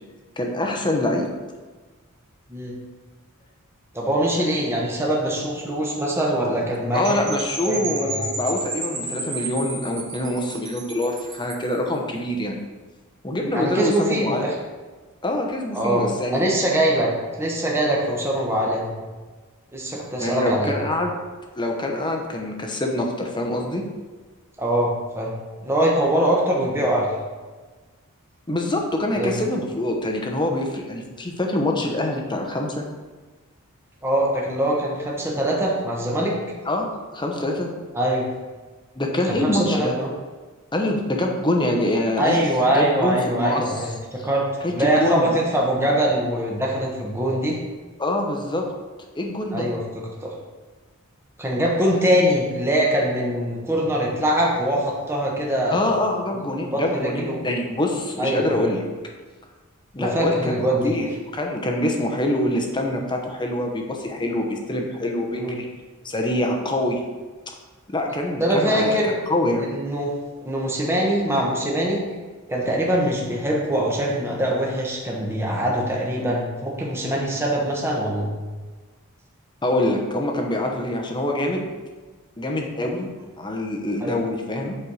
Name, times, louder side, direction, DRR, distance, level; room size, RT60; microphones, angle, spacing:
voice 1, 0.4-1.3 6.9-12.6 13.2-14.4 15.2-16.4 20.2-21.1 21.5-23.8 28.5-32.8 36.7-37.7 38.9-39.9 40.7-42.4 42.7-43.6 44.6-45.3 48.0-48.6 49.1-49.7 55.7-58.8 59.9-60.6 60.8-61.1 61.3-65.7 66.0-67.0 67.9-69.0 69.3-69.7 79.6-81.7 82.4-83.1 83.4-84.8, left 1 dB, 20° left, 2 dB, 0.9 m, -25 dB
voice 2, 3.9-7.2 7.6-8.3 13.5-14.5 15.7-17.1 17.4-18.9 19.7-20.7 24.6-25.3 25.6-27.1 29.2-29.4 34.0-36.3 37.9-38.3 39.3-40.1 42.2-47.6 49.5-49.8 50.2-50.3 51.4-55.8 56.7-57.4 58.2-58.6 60.0-60.9 65.3-65.6 68.4-69.1 69.7-70.1 70.4-72.0 72.5-78.3 84.0-84.2, right 1 dB, 10° right, -3 dB, 1.1 m, -23 dB
Percussion / Wind chime, 7.0-11.7, right 2 dB, 35° right, 1.6 m, -32 dB
8.1 x 4.4 x 4.8 m, 1.3 s
head